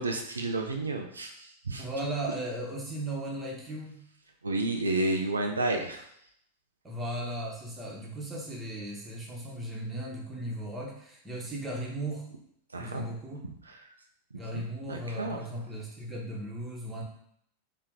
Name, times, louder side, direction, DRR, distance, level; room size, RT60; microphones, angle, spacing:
voice 1, 0.0-1.9 4.4-6.0 12.7-13.0 13.7-13.9 14.3-14.6 14.9-15.4, right 2 dB, 75° right, 3 dB, 0.5 m, -31 dB
voice 2, 1.8-4.0 6.8-12.3 12.8-13.4 14.3-17.0, right 1 dB, 15° right, -2 dB, 1.2 m, -36 dB
4.2 x 2.9 x 3.7 m, 0.71 s
figure-of-eight pair, 90°, 0 cm